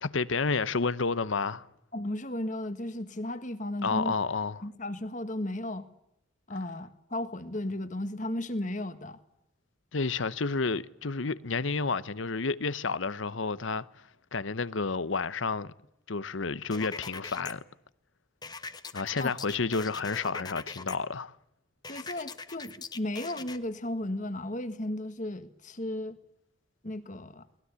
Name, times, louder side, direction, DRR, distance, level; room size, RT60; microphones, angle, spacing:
voice 1, 0.0-1.7 3.8-4.6 9.9-13.9 14.3-15.7 16.1-17.6 18.9-21.3, left 4 dB, 75° left, 0.9 m, -30 dB
voice 2, 1.9-4.2 4.6-5.9 6.5-9.2 19.2-19.3 21.9-26.2 26.8-27.5, left 1 dB, 40° left, 1.7 m, -35 dB
sound 1, 16.7-17.5 18.4-21.0 21.8-23.6, left 4 dB, 20° left, 1.1 m, -41 dB
23.0 x 20.0 x 8.2 m
head